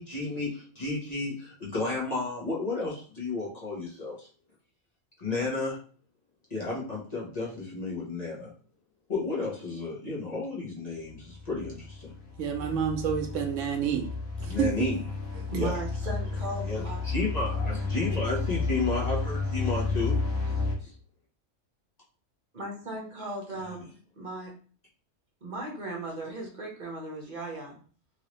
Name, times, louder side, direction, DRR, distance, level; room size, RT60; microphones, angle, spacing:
voice 1, 0.0-4.1 5.2-5.8 6.5-8.5 9.1-12.1 14.5-15.0 15.5-15.8 16.6-20.2 20.8-20.9, left 3 dB, 35° left, -5 dB, 1.0 m, -32 dB
sound 1, 11.1-20.7, left 3 dB, 75° left, 1.2 m, -32 dB
voice 2, 12.4-14.1 14.4-14.9, right 8 dB, 80° right, 5 dB, 0.9 m, -29 dB
voice 3, 15.5-17.0 22.5-23.9 24.2-24.5 25.4-27.8, right 2 dB, 40° right, -1 dB, 0.9 m, -36 dB
3.1 x 2.7 x 3.0 m, 0.42 s
omnidirectional pair, 1.3 m